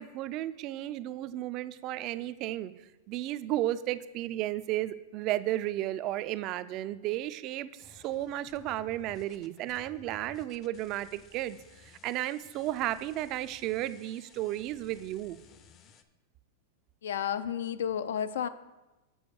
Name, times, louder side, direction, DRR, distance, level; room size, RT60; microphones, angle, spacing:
voice 1, 0.0-2.7 3.1-15.4, right 14 dB, 40° right, 14 dB, 0.3 m, -33 dB
sound 1, 7.8-16.0, left 7 dB, 30° left, 0.5 m, -57 dB
voice 2, 17.0-18.5, left 9 dB, 90° left, 14 dB, 0.4 m, -31 dB
7.0 x 4.6 x 6.8 m, 1.1 s
supercardioid pair, 150°, 0 cm